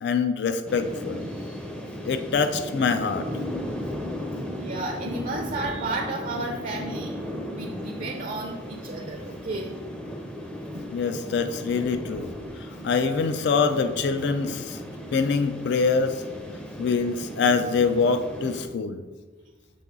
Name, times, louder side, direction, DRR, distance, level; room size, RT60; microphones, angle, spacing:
voice 1, 0.0-1.2 2.0-3.3 10.9-12.3 12.8-14.8 15.1-16.2 16.8-19.0, left 5 dB, 65° left, 10 dB, 0.4 m, -24 dB
sound 1, 0.7-18.6, equal, 5° left, 0.5 m, -36 dB
voice 2, 1.3-1.6 4.6-7.2 7.5-9.7 10.7-10.8, right 2 dB, 45° right, 2 dB, 0.5 m, -33 dB
6.9 x 3.8 x 3.6 m, 1.3 s
head